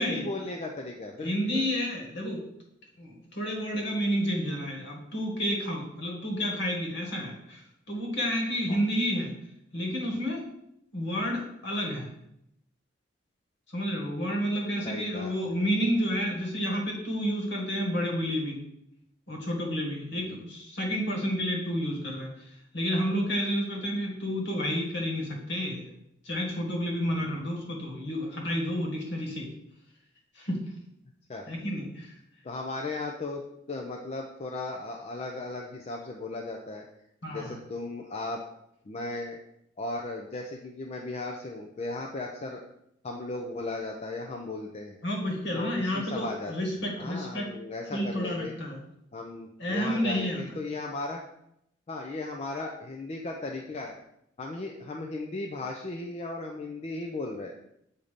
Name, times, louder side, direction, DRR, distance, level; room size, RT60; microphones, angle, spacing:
voice 1, 0.0-1.7 8.7-8.8 14.8-15.5 20.1-20.4 27.1-27.4 31.3-31.5 32.4-36.8 37.3-38.4 38.9-39.4 39.8-42.6 43.0-45.0 45.5-46.7 47.0-48.5 49.1-51.2 51.9-54.0 54.4-57.5, left 2 dB, 35° left, 1 dB, 0.4 m, -36 dB
voice 2, 1.2-2.4 3.0-7.6 7.9-9.3 9.7-10.4 10.9-12.1 13.7-18.6 19.3-22.3 22.7-25.8 26.2-29.5 30.3-30.7 31.5-32.1 37.2-37.5 45.0-47.5 47.9-48.8 49.6-50.4, equal, 65° left, 0 dB, 1.6 m, -30 dB
7.2 x 2.7 x 5.0 m, 0.77 s
head